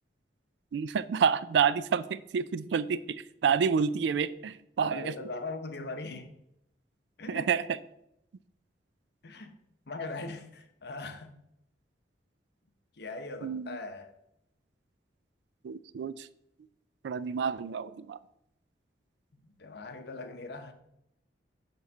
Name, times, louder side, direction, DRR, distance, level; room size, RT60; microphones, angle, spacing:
voice 1, 0.7-5.2 7.3-7.8 13.4-13.8 15.6-16.3 17.0-18.2, right 6 dB, 75° right, 0.3 m, -29 dB
voice 2, 4.8-6.3 7.2-7.5 9.2-9.5 9.9-11.3 13.0-14.1 19.6-20.7, left 3 dB, 65° left, 0.8 m, -40 dB
7.0 x 3.1 x 5.4 m
head